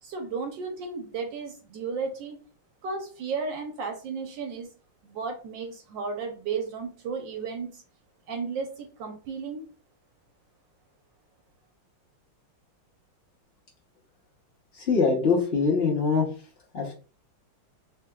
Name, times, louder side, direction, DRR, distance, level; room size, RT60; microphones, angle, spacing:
voice 1, 0.0-2.4 2.8-4.7 5.0-7.8 8.3-9.6, right 5 dB, 70° right, 4 dB, 1.3 m, -34 dB
voice 2, 14.9-16.2 16.7-16.9, left 4 dB, 75° left, -4 dB, 0.5 m, -23 dB
3.5 x 3.4 x 2.2 m, 0.37 s
omnidirectional pair, 2.3 m